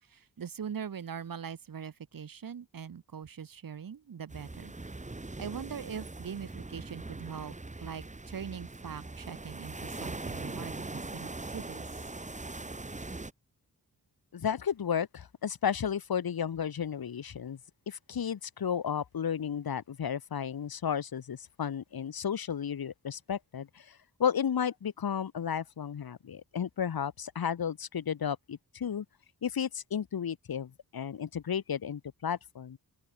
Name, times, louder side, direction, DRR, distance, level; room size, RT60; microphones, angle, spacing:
voice 1, 0.1-4.7 5.4-7.5 7.8-11.9, right 7 dB, 65° right, 2.9 m, -42 dB
sound 1, 4.3-13.3, right 2 dB, 20° right, 3.2 m, -41 dB
voice 2, 14.3-17.6 17.9-29.1 29.4-32.8, left 8 dB, 80° left, 4.2 m, -33 dB
open air
wide cardioid pair, 105°, 36 cm